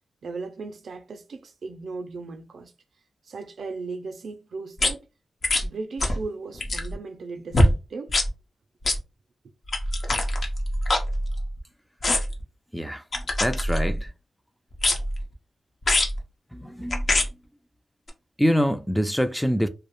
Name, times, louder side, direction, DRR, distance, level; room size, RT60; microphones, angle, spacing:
voice 1, 0.2-2.7 3.3-5.1 5.6-8.2, right 3 dB, 75° right, 0.4 m, -37 dB
sound 1, 4.8-4.9 5.4-5.7 6.0-6.2 6.5-6.9 7.5-7.7 8.1-8.3 8.8-9.0 9.7-11.6 12.0-12.4 13.1-14.1 14.8-15.2 15.8-16.2 16.9-17.3 18.1-18.2, left 1 dB, 55° left, 0.6 m, -24 dB
voice 2, 13.4-14.1 16.5-17.0 18.4-19.7, equal, ahead, 0.3 m, -25 dB
2.3 x 2.0 x 3.0 m
cardioid pair, 70°, 0 cm